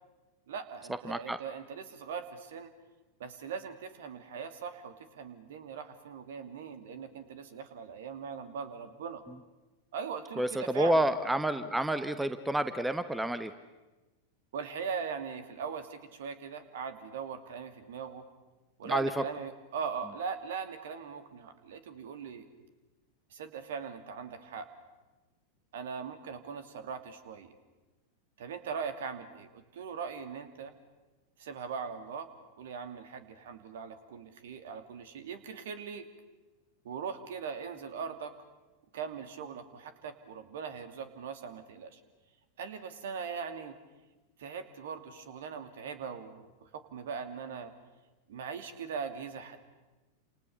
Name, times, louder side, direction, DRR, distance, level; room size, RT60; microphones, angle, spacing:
voice 1, 0.5-2.7 3.2-9.2 9.9-11.1 14.5-18.2 18.8-22.4 23.3-24.6 25.7-27.5 28.4-30.7 31.4-32.3 32.6-36.1 36.8-38.3 38.9-42.0 42.6-43.8 44.4-47.7 48.3-49.6, right 6 dB, 60° right, 10 dB, 2.7 m, -40 dB
voice 2, 1.0-1.4 9.3-9.4 10.4-13.5 18.8-19.2, right 1 dB, 5° right, 12 dB, 1.1 m, -29 dB
29.5 x 28.0 x 7.0 m, 1.1 s
figure-of-eight pair, 90°, 0 cm